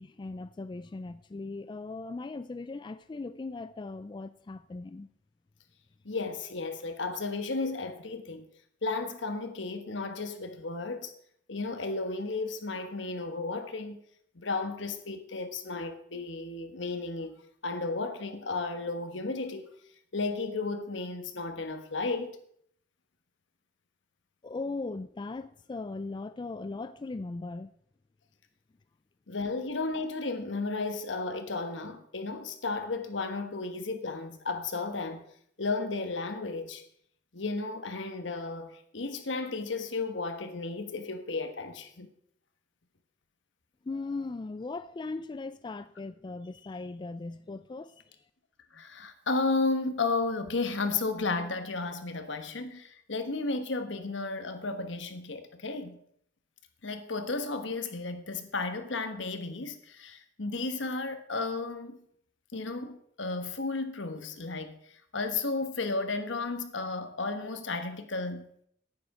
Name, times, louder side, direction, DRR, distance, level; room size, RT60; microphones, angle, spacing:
voice 1, 0.0-5.1 24.4-27.7 43.8-48.2, left 3 dB, 25° left, 0.3 m, -38 dB
voice 2, 6.0-8.5 8.8-11.1 11.5-14.0 14.3-19.7 20.1-22.4 29.3-35.2 35.6-36.8 37.3-42.1 48.7-56.0 56.8-62.0 62.5-68.5, left 3 dB, 80° left, 1.3 m, -33 dB
10.0 x 9.9 x 4.9 m
head